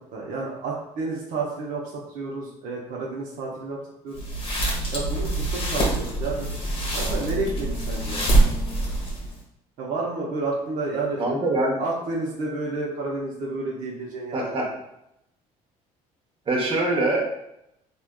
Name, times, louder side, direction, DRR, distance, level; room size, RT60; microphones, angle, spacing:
voice 1, 0.1-3.8 4.0-4.2 4.9-6.5 6.9-8.3 9.8-11.2 11.8-14.6, right 3 dB, 70° right, -3 dB, 0.7 m, -30 dB
sound 1, 4.1-9.4, right 2 dB, 40° left, 1.0 m, -25 dB
voice 2, 11.2-11.8 14.3-14.7 16.5-17.3, right 2 dB, 35° right, -2 dB, 0.8 m, -23 dB
3.3 x 2.4 x 2.2 m, 0.82 s
cardioid pair, 95°, 14 cm